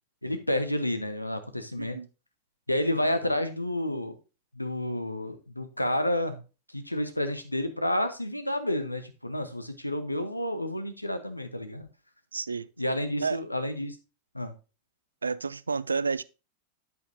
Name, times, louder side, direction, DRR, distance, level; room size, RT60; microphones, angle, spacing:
voice 1, 0.2-2.0 2.7-4.2 4.5-6.4 6.7-11.9 12.8-14.0 14.3-14.5, left 1 dB, 85° left, 0.9 m, -30 dB
voice 2, 12.3-12.7 13.2-13.4 15.2-16.2, right 4 dB, 75° right, 0.3 m, -30 dB
9.1 x 8.2 x 2.7 m
figure-of-eight pair, 90°, 0 cm